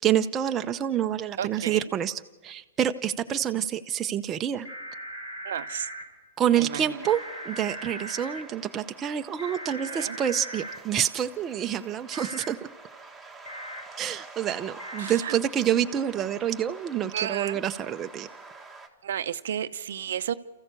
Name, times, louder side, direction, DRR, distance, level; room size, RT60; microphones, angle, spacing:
voice 1, 0.0-4.7 6.4-12.7 14.0-18.3, right 10 dB, 20° right, 7 dB, 0.7 m, -27 dB
voice 2, 1.4-1.8 5.4-5.9 6.6-7.0 9.8-10.2 15.0-15.4 17.1-17.6 19.0-20.3, right 9 dB, 70° right, 12 dB, 0.7 m, -32 dB
sound 1, 4.6-6.0 7.0-8.4 9.4-10.7 12.1-12.5 13.5-13.8 14.8-15.1, right 1 dB, 85° left, 4.4 m, -39 dB
sound 2, 6.7-18.9, right 3 dB, ahead, 1.8 m, -47 dB
28.5 x 14.5 x 6.9 m, 1.2 s
hypercardioid pair, 140°, 0 cm